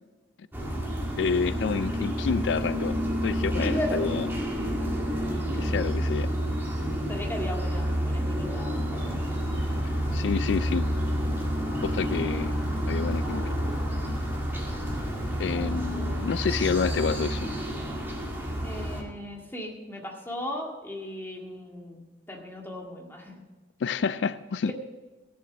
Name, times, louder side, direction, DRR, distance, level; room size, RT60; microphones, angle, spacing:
sound 1, 0.5-19.0, equal, 10° right, 2.0 m, -29 dB
voice 1, 1.2-3.0 3.2-4.3 5.6-6.3 10.1-10.8 11.8-12.5 12.9-13.5 15.4-17.5 23.8-24.7, left 5 dB, 80° left, 15 dB, 0.4 m, -28 dB
voice 2, 3.6-4.0 7.1-8.8 18.6-23.4, left 1 dB, 15° left, 0 dB, 1.9 m, -36 dB
sound 2, 8.9-15.4, equal, 30° left, 2.1 m, -40 dB
15.5 x 7.2 x 6.1 m, 1.2 s
head